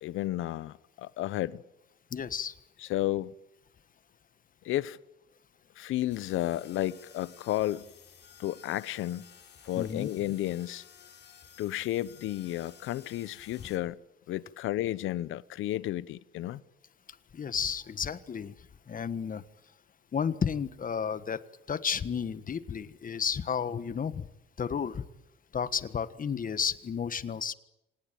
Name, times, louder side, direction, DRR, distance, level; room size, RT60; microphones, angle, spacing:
voice 1, 0.0-1.6 2.9-3.3 4.6-5.0 5.8-7.9 8.4-9.3 9.6-10.8 11.6-14.0 14.3-16.6, left 14 dB, 85° left, 0.9 m, -32 dB
voice 2, 2.1-2.5 9.7-10.1 13.6-13.7 17.3-18.5 18.9-19.4 20.1-21.4 21.7-24.3 24.6-25.0 25.5-27.5, left 7 dB, 45° left, 1.5 m, -32 dB
sound 1, 6.1-13.8, left 8 dB, 60° left, 6.4 m, -54 dB
26.5 x 19.5 x 9.2 m
cardioid pair, 90°, 20 cm